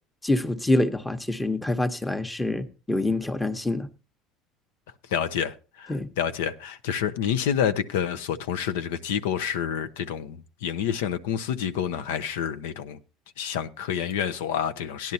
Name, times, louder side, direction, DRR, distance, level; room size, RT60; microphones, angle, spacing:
voice 1, 0.2-3.9 5.9-6.1, left 2 dB, 10° left, 0.9 m, -26 dB
voice 2, 5.1-13.0 13.4-15.1, left 8 dB, 90° left, 0.6 m, -28 dB
16.0 x 10.5 x 2.7 m
supercardioid pair, 105°, 0 cm